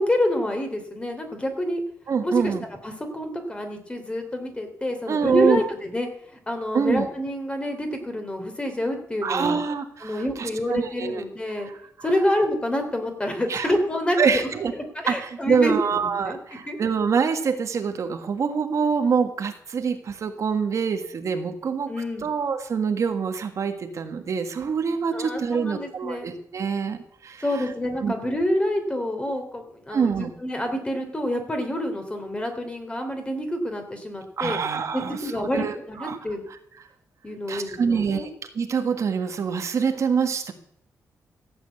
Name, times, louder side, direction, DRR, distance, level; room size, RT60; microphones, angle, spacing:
voice 1, 0.0-1.8 2.2-2.5 2.8-9.6 10.0-11.7 12.0-14.2 15.0-16.8 21.9-22.3 25.1-26.3 27.4-34.6 34.9-36.4 37.2-38.3, left 1 dB, 15° left, 5 dB, 3.0 m, -27 dB
voice 2, 2.1-2.6 5.1-5.6 6.7-7.1 9.2-11.2 11.6-11.8 13.5-13.7 14.2-14.7 15.1-21.9 22.2-27.4 28.0-28.3 29.9-30.3 34.4-36.2 36.5-36.6 37.5-38.3 38.5-40.5, right 6 dB, 55° right, 6 dB, 1.6 m, -25 dB
15.0 x 8.0 x 8.2 m, 0.72 s
cardioid pair, 110°, 6 cm